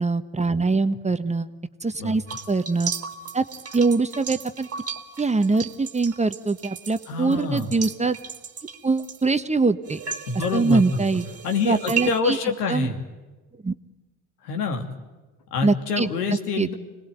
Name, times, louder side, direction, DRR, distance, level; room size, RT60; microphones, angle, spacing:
voice 1, 0.0-1.5 1.8-2.9 3.3-3.4 3.7-4.7 5.2-8.2 8.8-10.0 10.5-11.3 11.6-12.4 12.7-12.9 13.6-13.7 15.6-16.1 16.6-16.7, right 3 dB, 15° right, 11 dB, 1.2 m, -23 dB
sound 1, 2.3-9.4 9.9-12.2, right 6 dB, 30° right, 2.3 m, -35 dB
voice 2, 7.1-7.7 10.3-11.0 11.4-13.0 14.4-14.9 15.5-16.7, left 4 dB, 85° left, 5 dB, 2.9 m, -26 dB
26.0 x 19.5 x 9.3 m, 1.2 s
hypercardioid pair, 70°, 45 cm